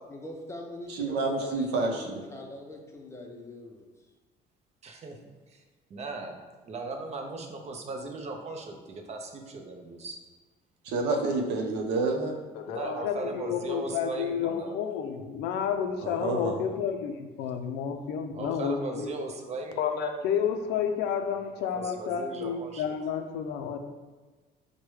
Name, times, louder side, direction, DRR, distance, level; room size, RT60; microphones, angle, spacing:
voice 1, 0.1-3.8, left 2 dB, 15° left, 1 dB, 0.6 m, -42 dB
voice 2, 0.9-2.2 10.8-12.3 16.0-16.6, right 3 dB, 85° right, 2 dB, 0.6 m, -28 dB
voice 3, 4.8-5.2 5.5-5.6 5.9-6.4 6.7-10.2 12.7-14.7 18.4-20.2 21.7-22.9, right 3 dB, 40° right, 3 dB, 0.6 m, -38 dB
voice 4, 12.6-19.1 19.8-23.8, left 7 dB, 85° left, 6 dB, 0.4 m, -31 dB
4.7 x 2.2 x 3.1 m, 1.3 s
cardioid pair, 110°, 17 cm